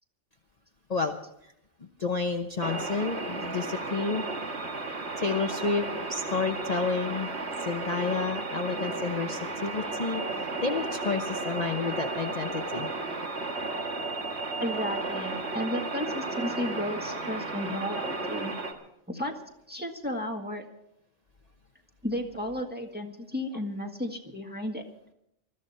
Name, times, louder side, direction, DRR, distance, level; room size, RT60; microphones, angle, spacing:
voice 1, 2.0-4.2 5.2-7.3 7.6-12.9, left 4 dB, 35° left, 3 dB, 0.9 m, -30 dB
sound 1, 2.6-18.7, right 3 dB, 65° right, 1.9 m, -34 dB
voice 2, 14.6-18.5 19.1-19.3 19.7-20.6 22.0-24.8, left 1 dB, 10° right, 1 dB, 1.7 m, -33 dB
20.5 x 13.5 x 4.4 m, 0.78 s
omnidirectional pair, 1.2 m